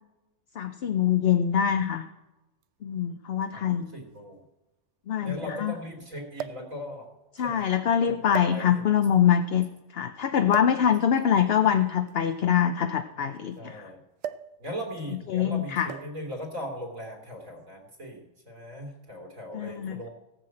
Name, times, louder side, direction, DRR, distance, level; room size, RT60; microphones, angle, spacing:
voice 1, 0.6-2.0 2.8-3.9 5.1-5.7 7.4-9.7 9.9-13.8 15.3-15.9 19.5-20.1, left 9 dB, 55° left, 8 dB, 0.8 m, -24 dB
sound 1, 2.6-2.7 3.8-3.9 4.2-4.3 6.3-6.8 7.6-7.8 8.3-9.0 10.5-10.8 12.0-13.6 14.2-14.6 14.8-15.1 15.9-16.3 17.2-17.5, right 9 dB, 65° right, 0.8 m, -38 dB
voice 2, 3.5-4.4 5.2-7.1 7.4-7.6 8.0-8.2 8.5-8.9 13.6-14.0 14.6-20.1, equal, 85° right, 1 dB, 3.1 m, -39 dB
17.0 x 5.8 x 7.7 m, 1.1 s
omnidirectional pair, 1.4 m